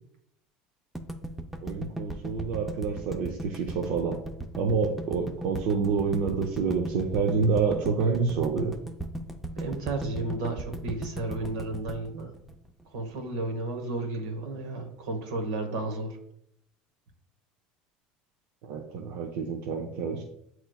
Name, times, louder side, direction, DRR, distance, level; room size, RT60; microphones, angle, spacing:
sound 1, 1.0-13.1, right 1 dB, 5° right, 0.4 m, -37 dB
voice 1, 1.6-4.2 4.6-8.7 18.6-20.2, right 5 dB, 70° right, 2 dB, 0.6 m, -28 dB
voice 2, 9.6-12.3 12.9-16.2, right 2 dB, 85° right, 4 dB, 1.0 m, -33 dB
7.7 x 3.0 x 2.3 m, 0.73 s
supercardioid pair, 115°, 3 cm